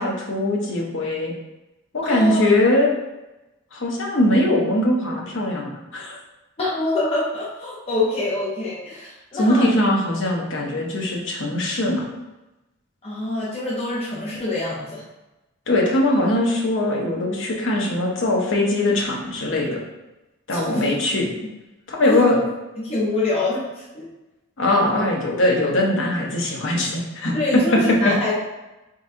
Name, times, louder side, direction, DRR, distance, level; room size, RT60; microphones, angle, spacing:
voice 1, 0.0-1.3 1.9-2.9 3.7-6.2 9.4-12.1 15.7-19.8 20.5-21.3 21.9-22.4 24.6-27.6 28.0-28.1, left 1 dB, 60° left, -1 dB, 0.9 m, -21 dB
voice 2, 2.0-2.4 6.6-9.7 13.0-15.0 20.5-20.9 22.0-22.4 22.8-24.1 27.3-28.3, left 2 dB, 30° left, -7 dB, 0.7 m, -25 dB
4.0 x 3.8 x 2.7 m, 1.0 s
head